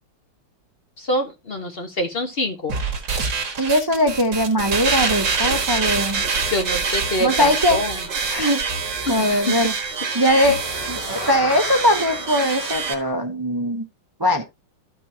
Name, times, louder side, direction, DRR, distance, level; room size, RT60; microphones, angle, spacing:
voice 1, 1.0-2.7 6.5-8.0 9.1-9.6 10.3-10.5, left 1 dB, 35° left, 5 dB, 1.1 m, -25 dB
sound 1, 2.7-12.9, right 5 dB, 70° right, 2.2 m, -25 dB
voice 2, 3.6-6.2 7.2-7.8 8.3-8.6 9.1-9.7 10.1-10.6 10.9-13.9 14.2-14.4, equal, 30° right, 2 dB, 0.4 m, -20 dB
sound 2, 8.0-13.1, equal, 15° right, 3.9 m, -36 dB
13.5 x 5.4 x 2.8 m, 0.22 s
omnidirectional pair, 2.1 m